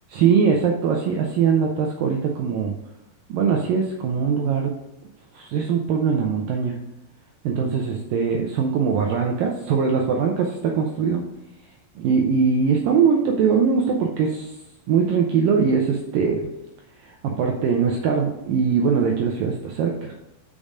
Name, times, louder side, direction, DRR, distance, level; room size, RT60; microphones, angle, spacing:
voice 1, 0.1-2.7 3.3-4.7 5.3-6.8 7.4-11.2 12.0-14.5 14.9-16.5 17.0-20.1, right 6 dB, 85° right, 1 dB, 2.0 m, -21 dB
6.8 x 5.3 x 4.9 m, 0.99 s
omnidirectional pair, 4.9 m